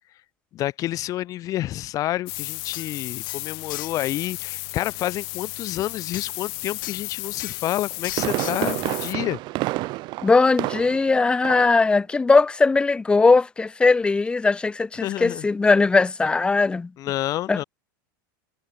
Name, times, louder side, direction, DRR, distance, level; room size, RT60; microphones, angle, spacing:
voice 1, 0.5-9.4 15.0-15.5 17.0-17.6, left 14 dB, 30° left, 1.0 m, -29 dB
sound 1, 2.3-9.1, left 40 dB or more, 50° left, 6.1 m, -34 dB
sound 2, 2.4-2.5 2.7-2.9 3.3-4.0 6.1-6.3 6.8-7.1 7.4-7.7 8.0-8.6, left 17 dB, 75° left, 5.2 m, -37 dB
Fireworks, 7.7-11.1 11.4-11.8 12.1-12.2, right 20 dB, 40° right, 6.5 m, -29 dB
voice 2, 10.2-16.9 17.5-17.6, left 3 dB, 10° left, 0.7 m, -19 dB
supercardioid pair, 155°, 11 cm